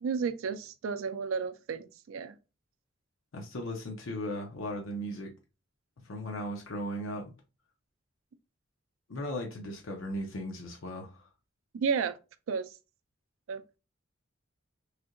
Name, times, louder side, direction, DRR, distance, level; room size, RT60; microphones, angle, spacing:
voice 1, 0.0-2.3 11.7-12.2 12.5-12.7 13.5-13.8, right 5 dB, 85° right, 0.4 m, -32 dB
voice 2, 3.3-5.3 6.0-7.3 9.1-11.3, equal, 85° left, 0.6 m, -37 dB
3.3 x 2.7 x 2.5 m
head